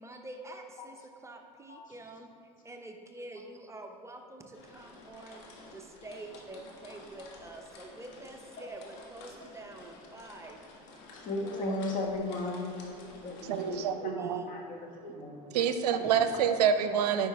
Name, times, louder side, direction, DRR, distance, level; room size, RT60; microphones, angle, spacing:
voice 1, 0.0-10.6 11.4-11.8 14.2-14.5 15.6-15.8, right 2 dB, 15° right, 4 dB, 0.7 m, -47 dB
sound 1, 4.5-13.9, left 2 dB, 70° left, 1.4 m, -52 dB
voice 2, 11.1-14.2 14.5-15.4, left 2 dB, 40° left, 0 dB, 1.5 m, -35 dB
voice 3, 13.4-14.4 15.5-17.3, right 8 dB, 90° right, 9 dB, 0.5 m, -27 dB
9.2 x 5.4 x 3.4 m, 2.5 s
hypercardioid pair, 85°, 20 cm